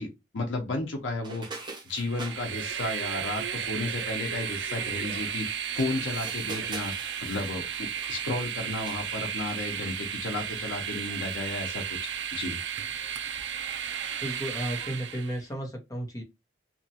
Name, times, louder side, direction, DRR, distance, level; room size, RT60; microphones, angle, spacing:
voice 1, 0.0-1.5 1.8-5.5 5.7-6.9 7.2-12.6, left 2 dB, 85° left, 1 dB, 0.7 m, -33 dB
sound 1, 1.2-2.4 5.6-8.4 8.8-9.1, right 3 dB, 25° right, 0.6 m, -43 dB
Train, 1.9-15.4, right 8 dB, 70° right, 0.4 m, -34 dB
voice 2, 14.2-16.2, right 1 dB, 20° left, 1 dB, 0.8 m, -33 dB
2.8 x 2.3 x 2.7 m, 0.24 s
head